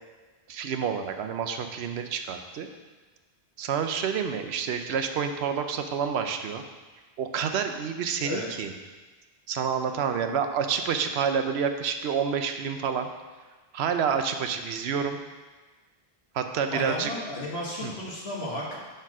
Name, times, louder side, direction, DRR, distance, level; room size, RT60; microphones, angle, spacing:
voice 1, 0.5-2.7 3.6-6.6 7.2-8.7 9.5-13.1 13.7-15.2 16.3-17.1 17.8-17.9, right 7 dB, 75° right, 7 dB, 0.8 m, -28 dB
voice 2, 16.7-18.8, left 1 dB, 70° left, -4 dB, 1.8 m, -33 dB
5.2 x 4.5 x 6.0 m, 1.3 s
omnidirectional pair, 1.1 m